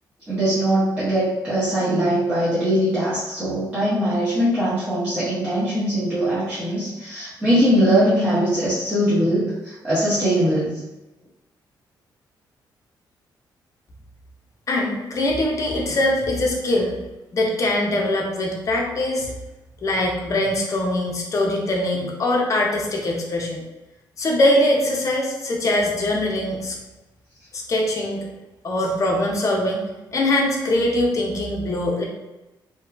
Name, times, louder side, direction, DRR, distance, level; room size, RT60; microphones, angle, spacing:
voice 1, 0.3-10.8 15.9-16.0 21.9-22.0, equal, 15° right, -11 dB, 0.8 m, -21 dB
voice 2, 14.7-17.0 17.3-19.3 19.8-23.6 24.2-26.8 27.5-28.3 28.6-29.9 30.1-32.0, left 1 dB, 45° left, -1 dB, 0.6 m, -22 dB
2.9 x 2.2 x 2.3 m, 1.0 s
cardioid pair, 100°, 8 cm